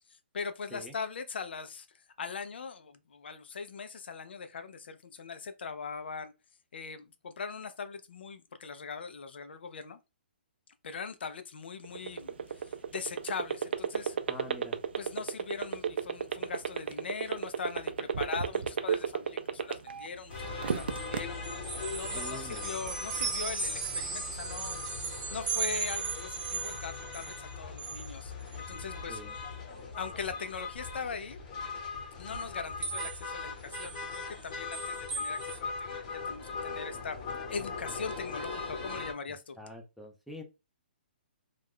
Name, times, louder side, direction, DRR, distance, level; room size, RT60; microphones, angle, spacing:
voice 1, 0.1-6.3 6.7-10.0 10.8-14.2 15.0-21.4 21.9-24.8 25.3-28.3 28.7-29.2 30.0-31.4 32.2-37.2 37.5-39.6, left 5 dB, 75° left, 0.5 m, -40 dB
sound 1, 11.8-20.1 20.4-21.2, right 7 dB, 75° right, 0.4 m, -30 dB
voice 2, 14.3-14.8 22.1-22.8 29.1-29.3 39.6-40.4, equal, ahead, 0.4 m, -45 dB
sound 2, 20.3-39.1, left 4 dB, 35° left, 1.0 m, -40 dB
sound 3, 20.7-27.4 27.8-28.1 28.5-28.7 29.4-29.5 32.8-33.3 33.7-35.6, right 5 dB, 50° right, 0.8 m, -37 dB
2.4 x 2.2 x 3.4 m
hypercardioid pair, 155°, 6 cm